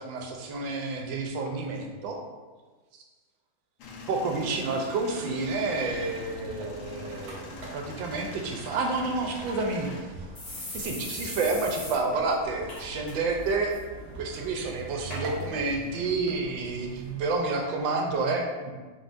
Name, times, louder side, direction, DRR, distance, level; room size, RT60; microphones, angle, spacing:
voice 1, 0.0-2.2 4.1-9.9 10.7-13.7 14.2-18.7, right 3 dB, 80° right, 2 dB, 1.4 m, -29 dB
Male speech man speaking / Vehicle / Engine starting, 3.8-10.0, left 3 dB, 85° left, 0.7 m, -43 dB
sound 1, 5.4-17.4, right 2 dB, 65° right, 1.1 m, -43 dB
sound 2, 9.8-9.9 10.3-12.0 12.3-12.4 12.7-13.1 13.5-13.8 14.5-14.6 15.1-15.2 15.9-16.0, left 2 dB, 65° left, 1.7 m, -38 dB
4.2 x 3.8 x 2.5 m, 1.3 s
omnidirectional pair, 2.1 m